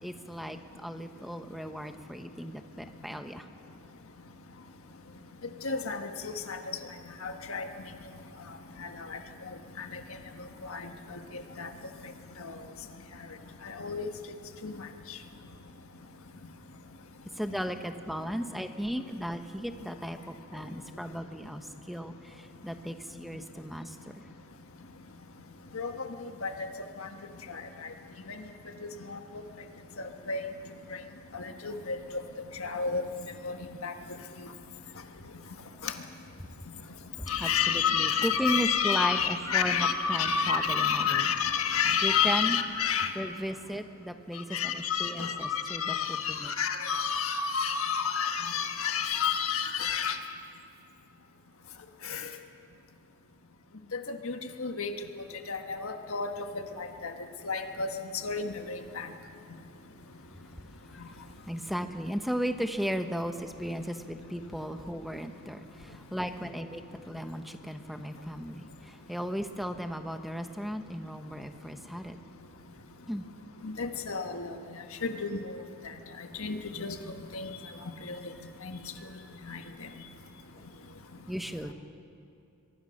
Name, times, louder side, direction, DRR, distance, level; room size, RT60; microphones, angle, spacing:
voice 1, 0.0-3.5 17.4-24.0 37.2-41.3 42.0-42.6 43.1-46.5 61.5-72.2 73.1-73.3 79.0-79.1 81.3-81.7, equal, ahead, 6 dB, 1.0 m, -36 dB
voice 2, 5.6-6.6 7.2-7.7 9.1-9.2 9.8-10.0 10.7-10.8 11.1-11.2 11.6-11.7 12.4-12.5 13.7-14.1 14.6-14.7 25.7-26.1 26.4-26.5 27.5-27.6 28.3-28.4 29.1-29.2 30.3-30.4 31.3-32.0 32.6-33.0 33.4-33.6 33.8-33.9 35.8-35.9 37.3-43.1 44.5-50.2 52.1-52.3 53.9-54.9 55.5-56.3 56.8-57.1 57.4-57.9 58.2-59.1 73.6-74.6 75.0-75.6 76.4-76.9 77.3-77.5 78.1-78.2 78.6-78.8 79.5-79.6, left 6 dB, 75° left, 5 dB, 1.5 m, -30 dB
23.5 x 22.5 x 6.5 m, 2.8 s
head